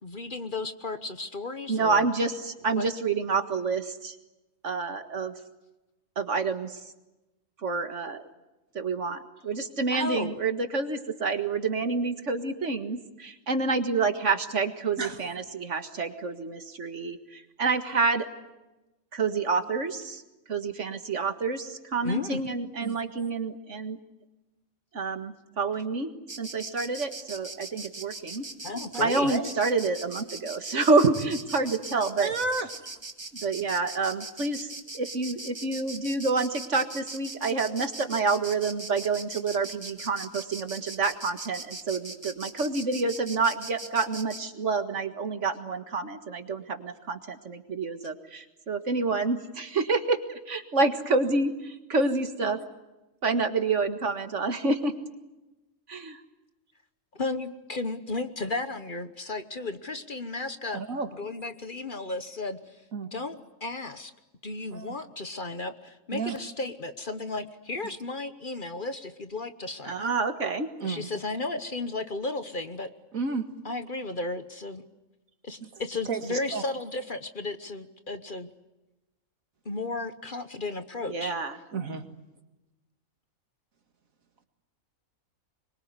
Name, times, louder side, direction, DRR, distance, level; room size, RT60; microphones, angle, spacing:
voice 1, 0.0-2.1 2.8-2.9 9.9-10.4 22.0-22.4 28.6-29.3 57.1-60.8 61.1-62.8 63.1-64.1 64.4-70.1 70.8-72.9 73.6-74.8 75.4-78.5 79.6-81.4, left 3 dB, 40° left, 10 dB, 1.2 m, -34 dB
voice 2, 1.7-4.2 4.6-5.3 6.2-6.8 7.6-8.3 8.7-18.3 19.1-20.2 20.5-24.0 24.9-26.1 26.4-28.4 29.0-32.3 33.4-52.6 53.2-54.9 55.9-56.2 69.8-70.7 81.1-81.5, right 4 dB, 60° right, 8 dB, 2.0 m, -28 dB
Insect, 26.3-44.4, right 2 dB, 20° right, 1.8 m, -40 dB
voice 3, 32.2-32.7 52.0-52.1 60.7-61.1 62.9-63.1 64.7-64.9 66.1-66.4 70.8-71.1 73.1-73.5 76.1-76.6 81.7-82.0, right 4 dB, 75° right, 7 dB, 2.4 m, -31 dB
25.0 x 22.5 x 9.6 m, 1.0 s
omnidirectional pair, 1.4 m